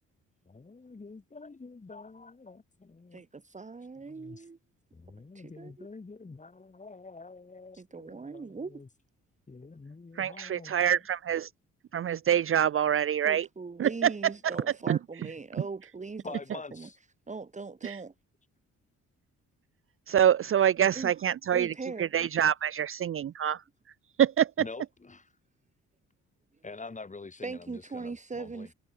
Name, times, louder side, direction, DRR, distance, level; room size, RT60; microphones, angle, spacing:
voice 1, 0.4-3.2 4.0-4.5 4.9-8.9 9.5-10.9 16.2-17.0 24.6-25.3 26.6-28.7, left 3 dB, 25° left, 5.9 m, -46 dB
voice 2, 3.1-4.6 5.3-5.9 7.8-8.8 13.2-16.9 17.3-18.1 20.9-21.1 21.5-22.1 27.4-28.7, right 4 dB, 25° right, 1.8 m, -40 dB
voice 3, 10.2-11.5 11.9-13.5 13.8-14.1 14.9-15.0 17.8-18.0 20.1-21.7 22.0-23.6 24.2-24.5, right 9 dB, 45° right, 0.7 m, -25 dB
cardioid pair, 90°, 30 cm